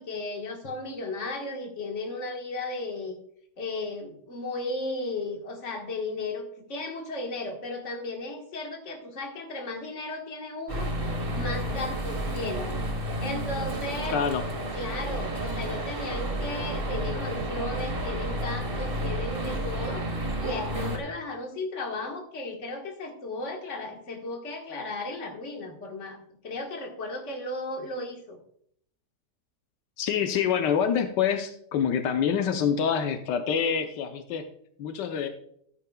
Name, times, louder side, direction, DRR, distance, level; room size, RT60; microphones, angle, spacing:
voice 1, 0.0-3.2 3.6-10.9 11.3-12.8 13.2-14.2 14.7-26.2 26.4-28.4, left 2 dB, 45° left, 2 dB, 1.8 m, -35 dB
sound 1, 10.7-21.0, right 1 dB, 35° right, 1.5 m, -31 dB
voice 2, 14.1-14.4 30.0-34.5 34.8-35.3, left 7 dB, 85° left, 6 dB, 1.4 m, -26 dB
14.0 x 8.9 x 2.3 m, 0.67 s
omnidirectional pair, 1.8 m